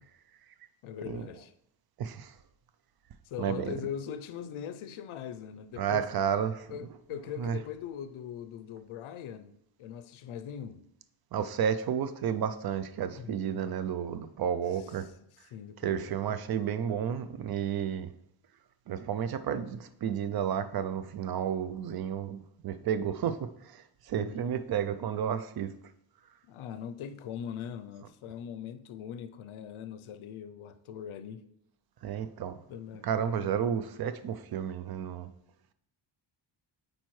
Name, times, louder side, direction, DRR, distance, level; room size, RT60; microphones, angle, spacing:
voice 1, 0.8-1.5 3.3-6.1 6.7-10.8 13.1-13.7 15.5-16.1 24.2-24.4 26.5-31.4 32.7-33.5, left 8 dB, 75° left, 0.6 m, -41 dB
voice 2, 2.0-2.3 3.4-3.8 5.8-6.7 7.4-7.6 11.3-15.1 15.8-18.1 18.9-25.7 32.0-32.6 33.0-35.3, right 8 dB, 50° right, 0.5 m, -32 dB
8.7 x 4.4 x 3.1 m
wide cardioid pair, 135°, 49 cm